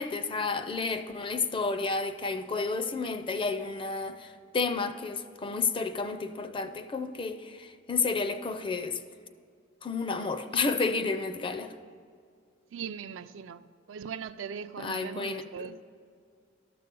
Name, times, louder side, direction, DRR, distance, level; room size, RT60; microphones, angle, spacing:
voice 1, 0.0-9.0 9.8-11.7 14.8-15.4, left 4 dB, 25° left, 0.5 m, -31 dB
voice 2, 12.7-13.6 13.9-15.8, right 7 dB, 75° right, 0.4 m, -39 dB
12.5 x 6.8 x 5.3 m
head